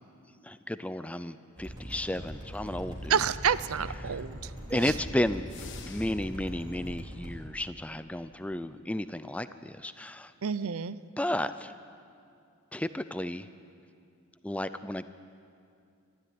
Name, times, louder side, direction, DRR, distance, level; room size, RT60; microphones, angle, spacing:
voice 1, 0.4-3.2 4.0-4.2 4.7-5.5 5.8-10.3 11.2-11.7 12.7-13.5 14.4-15.1, left 1 dB, 5° left, 12 dB, 0.4 m, -33 dB
sound 1, 1.6-7.3, equal, 20° right, 4.2 m, -41 dB
voice 2, 3.1-4.4 4.7-4.9 10.4-11.0, right 7 dB, 75° right, 16 dB, 0.6 m, -28 dB
sound 2, 5.5-6.5, left 8 dB, 55° left, 1.5 m, -49 dB
23.0 x 13.5 x 9.4 m, 2.4 s
head